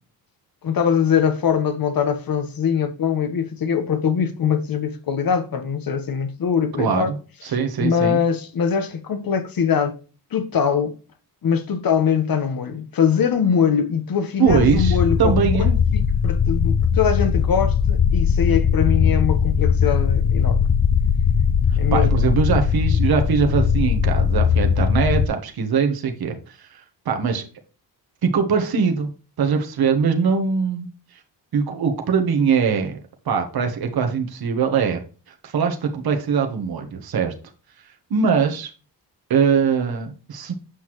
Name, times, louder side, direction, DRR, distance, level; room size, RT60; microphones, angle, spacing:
voice 1, 0.6-7.1 7.5-10.0 10.3-10.9 11.4-15.6 15.9-20.7 21.8-22.2, left 7 dB, 55° left, 1.3 m, -22 dB
voice 2, 6.8-7.1 7.4-8.2 14.4-15.8 21.9-26.7 27.0-27.4 28.2-29.1 29.4-30.9 31.5-33.0 33.2-35.0 35.4-37.3 38.1-38.7 39.3-40.5, right 6 dB, 60° right, 1.3 m, -21 dB
sound 1, 14.5-25.3, left 7 dB, 35° left, 0.6 m, -19 dB
8.1 x 5.7 x 3.1 m
cardioid pair, 80°, 41 cm